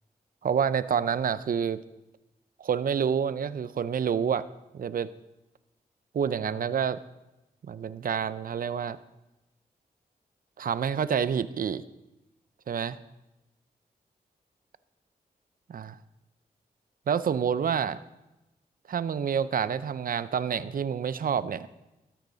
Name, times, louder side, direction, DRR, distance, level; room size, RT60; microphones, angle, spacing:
voice 1, 0.4-1.8 2.6-4.5 4.7-5.1 6.1-7.0 7.6-9.0 10.6-11.8 12.7-13.0 15.7-16.0 17.1-18.0 18.9-21.7, right 7 dB, 60° right, 15 dB, 0.6 m, -28 dB
13.0 x 10.5 x 4.0 m, 0.96 s
cardioid pair, 55°, 16 cm